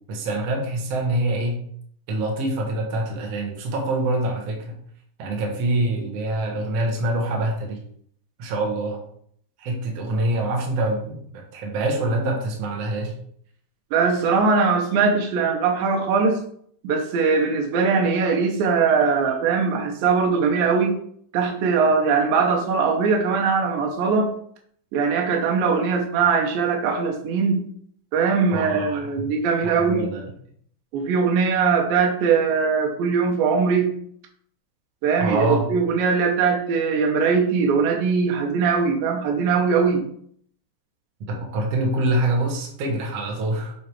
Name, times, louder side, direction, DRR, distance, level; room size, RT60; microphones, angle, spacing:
voice 1, 0.1-1.6 2.1-4.8 5.2-7.8 8.4-9.0 9.6-11.2 11.5-13.1 28.5-29.1 29.6-30.2 35.2-35.6 41.3-43.7, right 1 dB, 55° right, 0 dB, 2.1 m, -25 dB
voice 2, 13.9-16.4 16.8-21.0 21.3-24.3 24.9-27.6 28.1-30.1 30.9-33.9 35.0-40.1, right 5 dB, 85° right, 1 dB, 2.6 m, -21 dB
8.7 x 3.8 x 4.7 m, 0.63 s
omnidirectional pair, 4.0 m